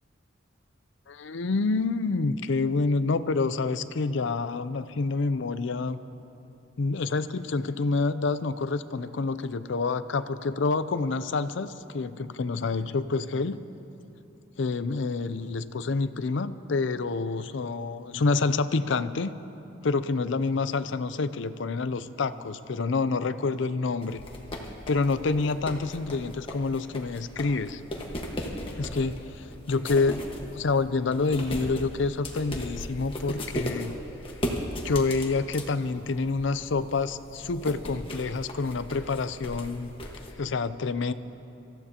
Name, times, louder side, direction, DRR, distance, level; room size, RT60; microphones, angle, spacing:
voice 1, 1.1-6.0 6.8-13.6 14.6-19.3 19.8-24.2 24.9-27.8 28.8-29.2 29.7-30.2 30.5-34.0 34.8-39.9 40.4-41.1, left 3 dB, 65° left, 13 dB, 0.5 m, -27 dB
sound 1, 24.0-40.3, equal, 30° left, 1.5 m, -37 dB
26.0 x 14.5 x 2.9 m, 2.8 s
head